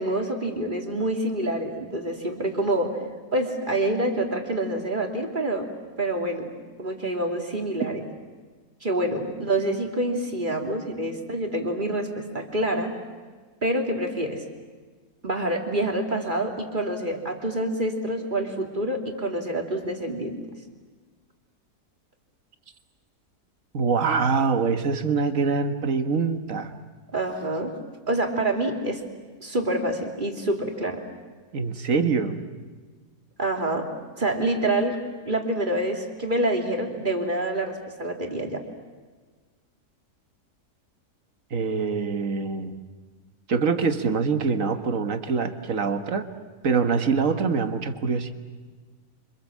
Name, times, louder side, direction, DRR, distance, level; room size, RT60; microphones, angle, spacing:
voice 1, 0.0-3.0 3.3-5.7 6.0-6.5 6.8-8.0 8.8-12.9 13.6-14.4 15.2-20.4 27.1-27.8 28.1-29.0 29.4-31.0 33.4-33.9 34.2-35.0 35.2-38.6, right 1 dB, 30° right, 2 dB, 2.9 m, -27 dB
voice 2, 23.7-26.8 31.5-32.4 41.5-42.8 43.5-46.3 46.6-48.3, right 5 dB, 55° right, 8 dB, 1.8 m, -24 dB
29.0 x 25.5 x 7.4 m, 1.4 s
omnidirectional pair, 1.7 m